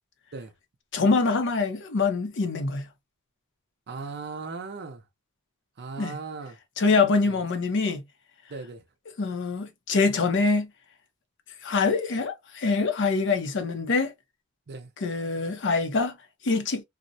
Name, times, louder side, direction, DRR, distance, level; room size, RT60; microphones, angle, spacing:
voice 1, 0.9-2.8 6.0-6.2 6.8-8.0 9.2-10.7 11.6-14.1 15.0-16.1 16.4-16.8, left 4 dB, 55° left, 0.6 m, -24 dB
voice 2, 3.9-5.0 5.8-6.6 7.2-7.4 8.5-8.8 14.7-14.9, right 4 dB, 50° right, 0.6 m, -37 dB
2.5 x 2.1 x 2.6 m
head